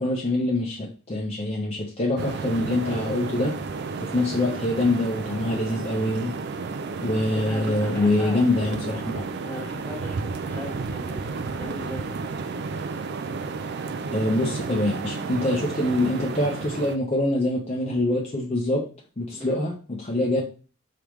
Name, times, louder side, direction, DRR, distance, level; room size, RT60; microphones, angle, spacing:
voice 1, 0.0-3.6 4.0-6.3 7.0-9.1 14.1-18.9 19.2-20.4, left 1 dB, 30° left, -2 dB, 0.6 m, -25 dB
sound 1, 2.2-17.0, right 4 dB, 55° right, 0.4 m, -32 dB
voice 2, 7.3-8.8 9.4-12.2 19.3-19.6 20.1-20.3, left 1 dB, 10° left, -1 dB, 1.3 m, -38 dB
5.0 x 3.4 x 3.1 m, 0.37 s
head